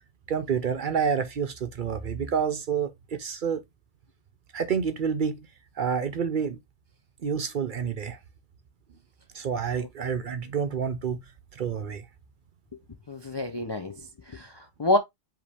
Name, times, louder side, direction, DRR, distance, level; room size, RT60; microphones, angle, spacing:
voice 1, 0.3-3.6 4.5-5.5 5.8-6.6 7.2-8.2 9.3-11.2 11.5-12.0, right 6 dB, 55° right, 0.7 m, -28 dB
voice 2, 13.1-15.0, left 1 dB, 45° left, 0.3 m, -28 dB
5.1 x 2.9 x 3.3 m
omnidirectional pair, 1.2 m